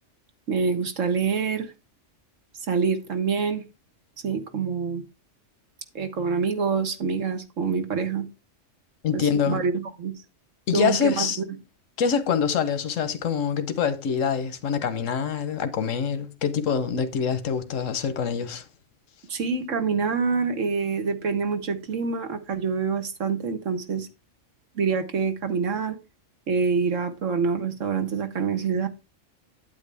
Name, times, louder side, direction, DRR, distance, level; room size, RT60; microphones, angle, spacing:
voice 1, 0.5-1.7 2.7-3.6 4.2-5.0 5.9-8.3 9.1-10.1 10.7-11.3 19.3-24.1 24.7-26.0 26.5-28.9, right 5 dB, 80° right, 1.7 m, -26 dB
voice 2, 9.0-9.6 10.7-11.4 12.0-18.6, left 7 dB, 90° left, 1.3 m, -25 dB
8.9 x 8.8 x 3.4 m
omnidirectional pair, 1.3 m